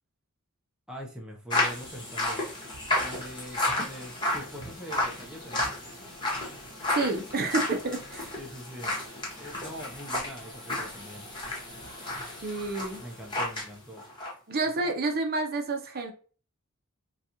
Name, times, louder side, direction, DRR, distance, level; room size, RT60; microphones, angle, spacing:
voice 1, 0.9-2.4 3.0-5.7 8.4-9.0 9.4-11.3 13.0-14.0 14.8-14.9, equal, 5° right, -1 dB, 0.6 m, -43 dB
sound 1, 1.5-13.7 14.0-14.3, left 1 dB, 20° left, 1.1 m, -32 dB
voice 2, 6.9-8.3 12.4-13.0 14.5-16.1, right 3 dB, 45° right, 3 dB, 0.7 m, -29 dB
3.9 x 2.4 x 2.8 m, 0.39 s
head